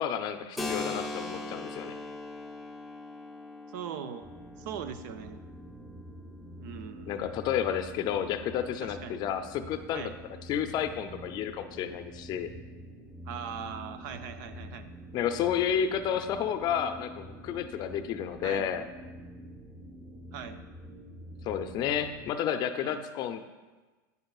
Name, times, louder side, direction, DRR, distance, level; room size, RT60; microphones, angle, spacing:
voice 1, 0.0-1.9 7.1-10.1 10.5-12.5 15.1-18.9 21.4-23.4, left 9 dB, 40° left, 9 dB, 0.5 m, -31 dB
Keyboard (musical), 0.6-7.9, left 2 dB, ahead, 0.7 m, -41 dB
voice 2, 3.7-4.3 4.6-5.4 6.6-7.2 8.8-9.2 9.9-10.1 13.3-14.9 18.4-18.7 20.3-20.6 22.8-23.0, right 8 dB, 65° right, 9 dB, 0.6 m, -40 dB
sound 1, 4.2-22.3, equal, 20° right, 1.4 m, -46 dB
9.3 x 7.6 x 2.4 m, 1.2 s
supercardioid pair, 120°, 11 cm